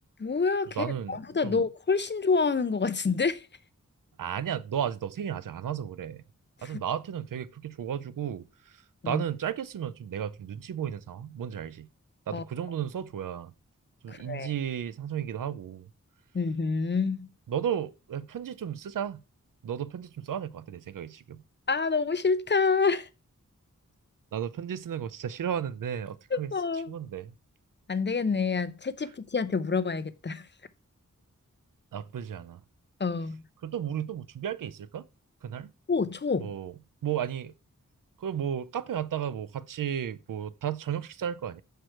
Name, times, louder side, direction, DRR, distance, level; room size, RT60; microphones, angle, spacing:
voice 1, 0.2-3.5 6.6-6.7 9.0-9.2 12.3-12.4 14.1-14.5 16.3-17.3 21.7-23.1 26.3-26.9 27.9-30.5 33.0-33.4 35.9-36.5, left 4 dB, 35° left, 0.5 m, -27 dB
voice 2, 0.8-1.6 4.2-6.2 6.6-11.9 12.3-13.5 14.0-15.9 17.5-19.2 19.6-21.4 24.3-27.3 31.9-32.6 33.6-35.1 35.4-35.7 36.4-36.7 37.0-37.5 38.2-41.6, right 9 dB, 90° right, 0.5 m, -34 dB
6.2 x 4.6 x 4.5 m
wide cardioid pair, 75°, 31 cm